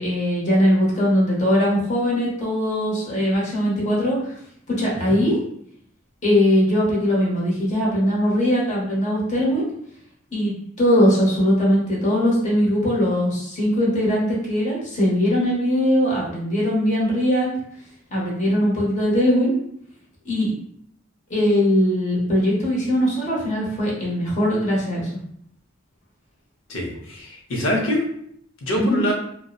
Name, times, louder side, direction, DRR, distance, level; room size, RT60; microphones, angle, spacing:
voice 1, 0.0-4.3 4.8-5.4 6.2-9.7 10.3-17.5 18.1-19.6 20.2-20.5 21.3-25.1 28.7-29.0, equal, 35° left, -5 dB, 0.8 m, -20 dB
voice 2, 26.7-28.0 28.6-29.1, left 1 dB, 80° left, -1 dB, 0.6 m, -25 dB
2.7 x 2.0 x 2.3 m, 0.68 s
head